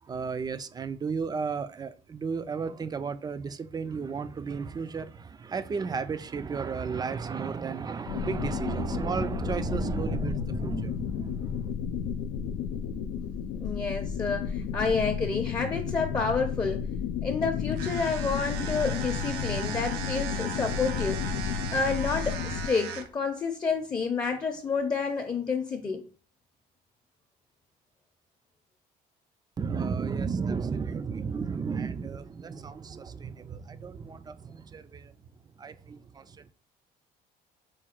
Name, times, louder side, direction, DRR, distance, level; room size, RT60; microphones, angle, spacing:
voice 1, 0.0-11.7 29.6-35.1 35.6-36.5, right 5 dB, 25° right, 0.3 m, -33 dB
sound 1, 8.1-22.7, left 8 dB, 90° left, 0.4 m, -33 dB
voice 2, 13.5-16.8 17.2-21.2 21.7-26.0, left 4 dB, 25° left, 0.6 m, -29 dB
sound 2, 17.7-23.3, right 5 dB, 90° right, 0.6 m, -37 dB
4.8 x 2.3 x 4.4 m
cardioid pair, 110°, 17 cm